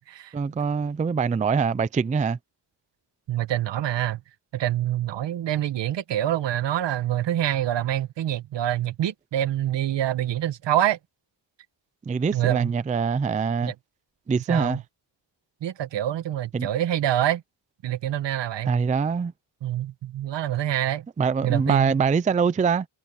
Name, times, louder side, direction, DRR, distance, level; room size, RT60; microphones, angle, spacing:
voice 1, 0.3-2.4 12.1-13.7 14.3-14.8 16.5-16.7 18.7-19.3 21.2-22.9, right 5 dB, 20° right, 0.4 m, -24 dB
voice 2, 3.3-4.2 4.5-11.0 12.3-12.7 13.6-13.7 14.5-14.8 15.6-17.4 17.8-18.7 19.6-21.0 21.4-22.1, right 12 dB, 70° right, 1.1 m, -26 dB
wide cardioid pair, 170°, 45 cm